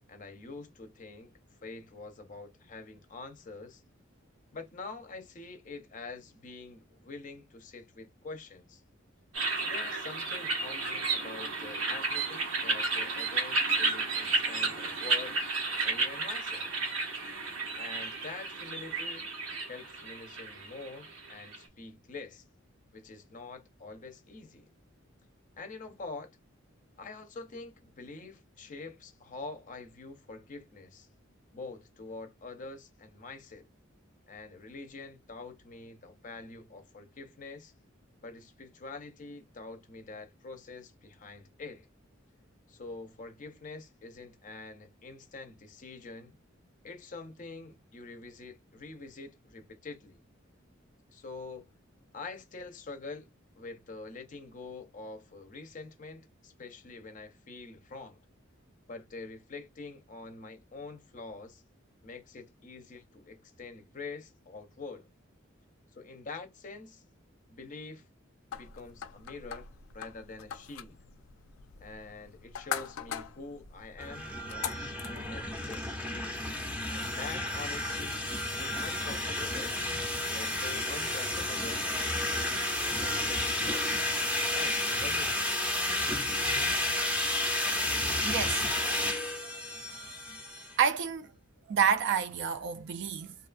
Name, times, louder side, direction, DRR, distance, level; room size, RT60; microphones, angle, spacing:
voice 1, 0.1-1.3 1.6-3.8 4.5-8.8 9.6-15.4 15.8-16.7 17.7-19.3 19.7-22.4 22.9-24.7 25.6-26.3 27.0-31.1 31.5-33.7 34.3-37.7 38.2-41.9 42.7-46.3 46.8-50.2 51.1-51.7 52.1-53.3 53.6-58.2 58.9-61.6 62.0-65.1 65.9-67.0 67.5-68.0 68.5-71.0 71.8-76.4 76.9-78.2 78.5-79.8 80.3-81.9 82.3-83.9 84.5-85.5, left 3 dB, 40° left, 0.5 m, -45 dB
sound 1, 9.3-21.6, right 3 dB, 75° right, 0.8 m, -32 dB
sound 2, 68.5-75.8, left 8 dB, 90° left, 0.4 m, -42 dB
sound 3, 74.0-90.8, left 1 dB, 5° right, 0.6 m, -31 dB
voice 2, 88.2-88.7 89.0-89.1 90.8-91.3 91.7-93.3, right 7 dB, 60° right, 0.3 m, -29 dB
2.6 x 2.3 x 2.4 m
head